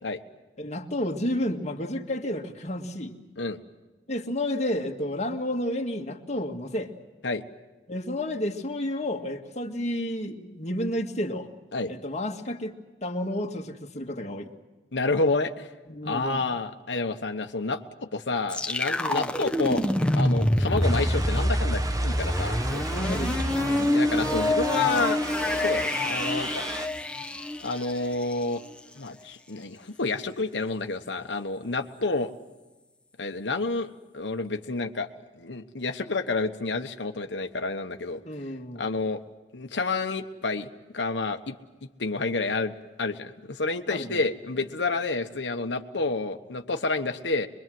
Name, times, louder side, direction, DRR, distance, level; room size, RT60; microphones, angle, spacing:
voice 1, 0.6-3.2 4.1-6.9 7.9-11.5 11.9-12.8 13.0-14.5 15.9-16.4 19.0-19.3 22.9-23.4 38.2-38.8 43.9-44.2, left 1 dB, 40° left, 2 dB, 1.9 m, -31 dB
voice 2, 14.9-15.7 16.0-17.8 18.1-19.8 20.1-22.8 23.9-25.2 25.5-26.6 27.6-28.6 29.0-32.3 33.2-35.1 35.4-38.2 38.8-39.2 39.5-40.7 40.9-41.5 42.0-47.5, left 3 dB, 90° left, 5 dB, 1.2 m, -29 dB
sound 1, 18.5-28.3, left 1 dB, 5° left, 1.1 m, -26 dB
sound 2, 20.8-26.9, right 2 dB, 20° right, 1.0 m, -36 dB
25.0 x 22.5 x 7.8 m, 1.2 s
head